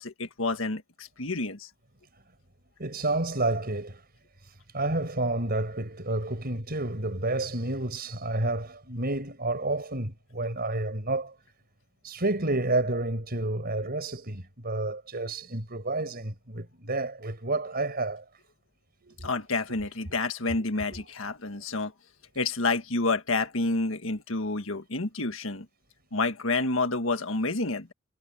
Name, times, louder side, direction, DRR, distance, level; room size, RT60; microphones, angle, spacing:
voice 1, 0.0-1.7 19.2-21.9 22.4-25.7 26.1-27.9, left 3 dB, 70° left, 1.8 m, -29 dB
voice 2, 2.8-4.0 4.4-11.4 12.0-18.2 19.0-19.3 20.9-21.0, right 2 dB, 50° right, 5.6 m, -30 dB
head